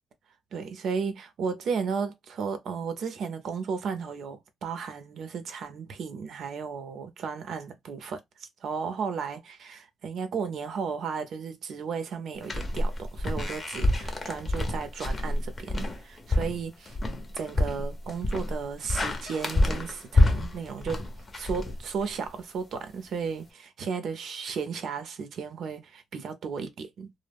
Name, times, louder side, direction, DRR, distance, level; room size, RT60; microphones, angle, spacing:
voice 1, 0.5-17.0 17.3-21.0 21.3-27.1, right 5 dB, 65° right, 0.6 m, -34 dB
sound 1, 12.4-22.3, left 2 dB, 30° left, 0.6 m, -27 dB
2.1 x 2.0 x 3.4 m
cardioid pair, 90°, 0 cm